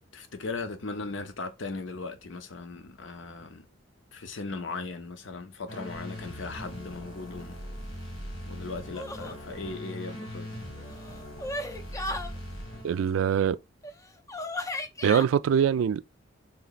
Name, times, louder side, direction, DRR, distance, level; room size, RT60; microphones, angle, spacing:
voice 1, 0.1-3.6 4.1-7.6 8.5-10.5, left 3 dB, 65° left, 0.7 m, -38 dB
sound 1, 5.7-13.4, equal, 85° left, 1.8 m, -41 dB
sound 2, 8.9-9.4 10.8-12.3 13.8-13.9 14.3-15.3, left 1 dB, 15° left, 0.4 m, -35 dB
voice 2, 12.8-13.6 15.0-16.2, right 8 dB, 80° right, 0.3 m, -24 dB
3.4 x 2.9 x 4.0 m
head